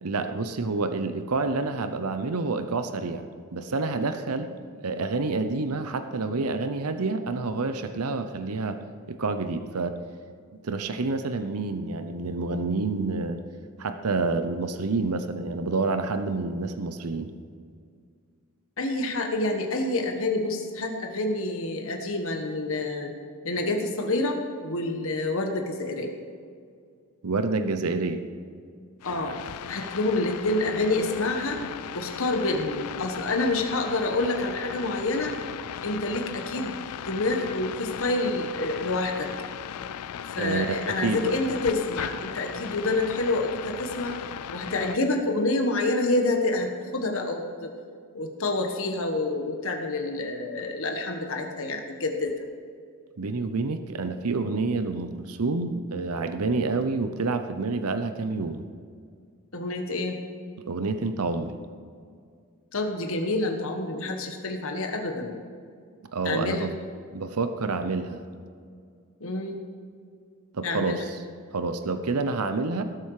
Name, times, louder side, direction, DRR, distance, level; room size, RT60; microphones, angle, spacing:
voice 1, 0.0-4.5 4.8-8.8 9.1-10.0 10.6-13.4 13.8-17.3 27.2-28.2 40.4-41.4 53.2-58.6 60.7-61.6 66.1-66.7 67.1-68.3 70.5-71.2 71.5-72.8, right 3 dB, 80° right, 9 dB, 0.8 m, -28 dB
voice 2, 18.8-23.1 23.4-26.2 29.0-29.4 29.7-31.6 31.9-35.3 35.8-36.8 37.0-39.3 40.3-44.2 44.5-47.7 48.1-52.4 59.5-60.2 62.7-65.4 66.2-66.7 69.2-69.6 70.6-71.0, left 2 dB, 60° left, 3 dB, 1.3 m, -28 dB
sound 1, 29.0-45.0, left 9 dB, 85° left, 0.4 m, -37 dB
18.5 x 7.9 x 4.9 m, 2.2 s
head